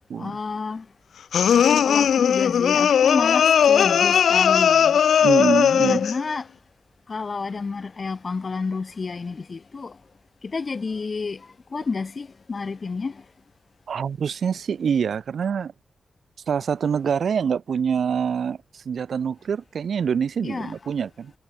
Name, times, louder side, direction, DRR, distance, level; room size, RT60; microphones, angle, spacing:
voice 1, 0.2-0.9 1.8-5.0 5.9-6.5 7.1-10.0 10.4-13.2 20.4-20.9, left 4 dB, 45° left, 5.9 m, -30 dB
sound 1, 1.3-6.2, left 8 dB, 90° left, 0.4 m, -18 dB
voice 2, 5.2-6.1 13.9-15.7 16.5-21.3, right 7 dB, 75° right, 3.4 m, -25 dB
cardioid pair, 90°, 0 cm